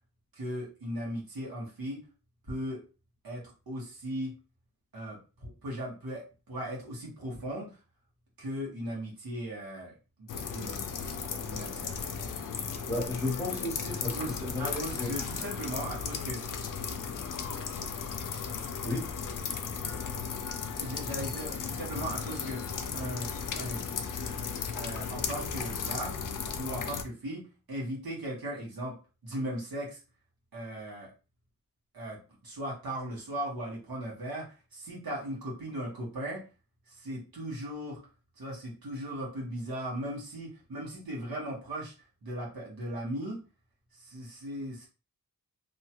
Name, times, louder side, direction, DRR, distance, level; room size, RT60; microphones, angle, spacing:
voice 1, 0.3-2.0 2.5-2.8 3.2-4.3 4.9-7.8 8.4-12.1 14.1-16.5 20.8-22.7 22.9-23.8 24.7-26.2 26.6-28.9 29.2-30.0 30.5-31.1 31.9-36.4 36.9-38.0 38.4-41.9 42.2-43.4 43.9-44.9, right 1 dB, 80° right, -3 dB, 1.4 m, -38 dB
sound 1, 10.3-27.0, left 6 dB, 65° left, 0.5 m, -35 dB
voice 2, 12.8-15.1 18.8-19.1, left 2 dB, 10° left, -3 dB, 1.0 m, -34 dB
2.7 x 2.3 x 2.9 m, 0.32 s
wide cardioid pair, 125°, 35 cm